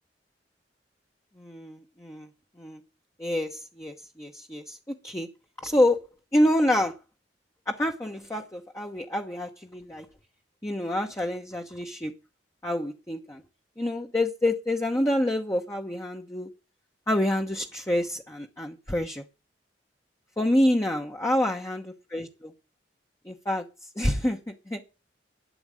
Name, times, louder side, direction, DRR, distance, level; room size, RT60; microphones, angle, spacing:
voice 1, 1.4-2.3 2.6-2.8 3.2-5.3 5.6-6.0 6.3-6.9 7.7-10.1 10.6-12.1 12.6-13.4 13.8-16.5 17.1-19.2 20.4-22.5 23.2-23.6 24.0-24.9, left 1 dB, 15° left, 2 dB, 1.0 m, -27 dB
12.0 x 8.7 x 6.5 m, 0.31 s
head